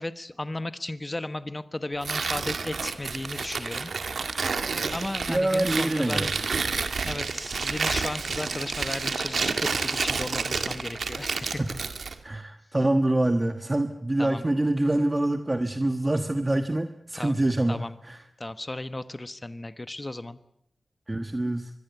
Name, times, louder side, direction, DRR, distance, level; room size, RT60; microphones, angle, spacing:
voice 1, 0.0-3.9 4.9-6.3 7.0-11.6 14.2-14.5 17.1-17.4 17.7-18.0 18.4-20.4, left 2 dB, 25° left, 12 dB, 1.2 m, -35 dB
Tearing, 2.0-12.2, right 4 dB, 80° right, 2.1 m, -30 dB
voice 2, 5.3-6.3 11.6-11.7 12.2-18.2 21.1-21.7, right 1 dB, 25° right, 8 dB, 1.3 m, -25 dB
25.0 x 22.0 x 8.2 m, 0.75 s
wide cardioid pair, 100°, 0 cm